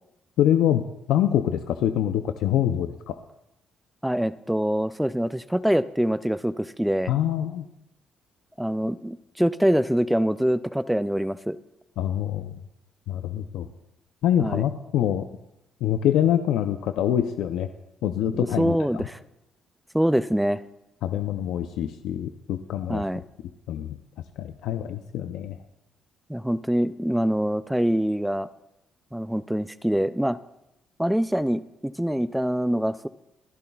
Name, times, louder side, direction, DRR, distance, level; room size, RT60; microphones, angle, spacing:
voice 1, 0.4-0.8 1.1-3.2 7.1-7.7 12.0-12.5 13.1-13.7 14.2-15.3 15.8-17.7 18.0-19.0 21.0-23.0 23.7-24.0 24.4-25.6, left 10 dB, 85° left, 8 dB, 0.5 m, -25 dB
voice 2, 4.0-7.1 8.6-11.6 14.4-14.6 18.3-19.2 19.9-20.6 22.9-23.2 26.3-28.5 29.1-30.4 31.0-33.1, equal, 5° right, 14 dB, 0.3 m, -24 dB
26.0 x 10.5 x 2.3 m, 0.87 s
cardioid pair, 120°, 0 cm